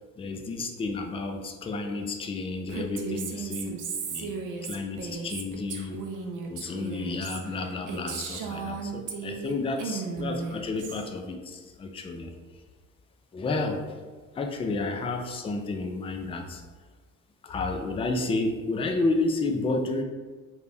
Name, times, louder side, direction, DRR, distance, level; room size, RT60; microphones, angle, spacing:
voice 1, 0.2-3.8 4.1-4.4 4.6-6.0 6.5-12.4 13.3-14.0 14.4-16.6 17.4-20.0, left 3 dB, 15° left, 4 dB, 0.3 m, -31 dB
Female speech woman speaking, 2.7-9.5 9.8-11.1, right 5 dB, 50° right, 0.5 m, -35 dB
2.5 x 2.1 x 3.3 m, 1.4 s
hypercardioid pair, 50°, 38 cm